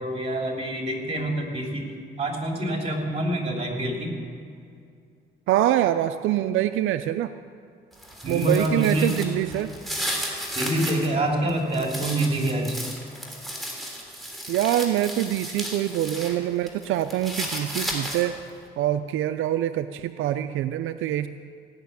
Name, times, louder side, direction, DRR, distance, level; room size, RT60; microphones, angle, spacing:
voice 1, 0.0-4.1 8.2-9.1 10.5-12.8, right 1 dB, 30° right, 1 dB, 3.3 m, -26 dB
voice 2, 5.5-7.3 8.3-9.7 14.5-18.4 18.8-21.3, right 12 dB, 85° right, 10 dB, 0.5 m, -25 dB
sound 1, 7.9-11.1 11.5-16.3 16.7-18.4, equal, ahead, 3.4 m, -34 dB
16.5 x 6.8 x 9.5 m, 2.3 s
cardioid pair, 90°, 20 cm